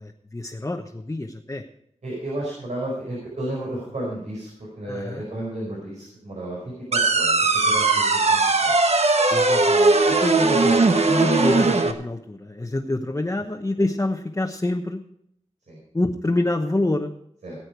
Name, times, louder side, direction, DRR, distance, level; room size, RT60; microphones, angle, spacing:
voice 1, 0.0-1.6 4.8-5.2 9.3-15.0 15.9-17.1, left 2 dB, 25° left, 1 dB, 1.0 m, -27 dB
voice 2, 2.0-8.8 15.7-15.8 17.4-17.6, right 1 dB, 85° right, -4 dB, 5.0 m, -33 dB
sound 1, 6.9-11.9, right 3 dB, 60° right, 1.2 m, -19 dB
19.0 x 8.6 x 4.7 m, 0.73 s
wide cardioid pair, 75°, 12 cm